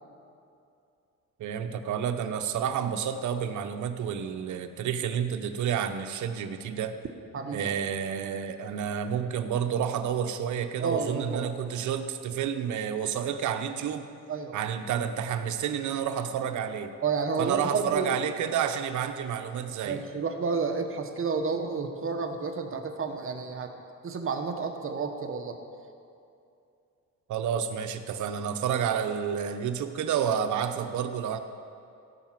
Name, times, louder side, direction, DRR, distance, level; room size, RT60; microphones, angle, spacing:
voice 1, 1.4-6.9 7.5-14.1 14.5-16.9 17.4-20.1 27.3-31.4, right 8 dB, 75° right, 8 dB, 0.9 m, -30 dB
voice 2, 7.3-7.7 10.8-11.5 14.3-14.6 17.0-18.1 19.9-23.7 24.0-25.5, right 5 dB, 45° right, 5 dB, 1.3 m, -30 dB
15.5 x 5.8 x 7.6 m, 2.6 s
cardioid pair, 90°, 30 cm